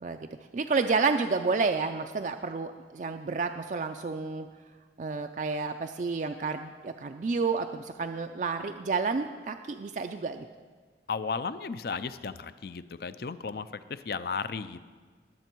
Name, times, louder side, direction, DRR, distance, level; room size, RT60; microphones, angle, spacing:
voice 1, 0.5-4.5 5.0-10.4, right 4 dB, 45° right, 6 dB, 0.4 m, -30 dB
voice 2, 11.1-14.9, left 5 dB, 60° left, 13 dB, 0.5 m, -35 dB
20.0 x 7.6 x 4.5 m, 1.5 s
head